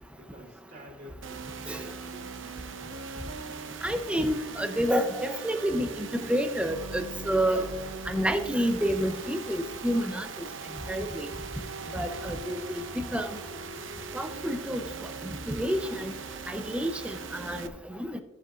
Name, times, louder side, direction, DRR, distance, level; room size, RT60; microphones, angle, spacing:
voice 1, 0.2-2.8, equal, 50° right, -3 dB, 3.0 m, -50 dB
sound 1, 1.2-17.7, right 4 dB, 75° right, 0.8 m, -40 dB
voice 2, 3.8-7.7 8.1-10.3 10.9-11.3 11.9-13.3 14.1-14.8 15.5-16.1 16.5-17.7 18.0-18.2, equal, 5° right, 6 dB, 0.6 m, -29 dB
15.0 x 7.5 x 2.5 m, 1.1 s
head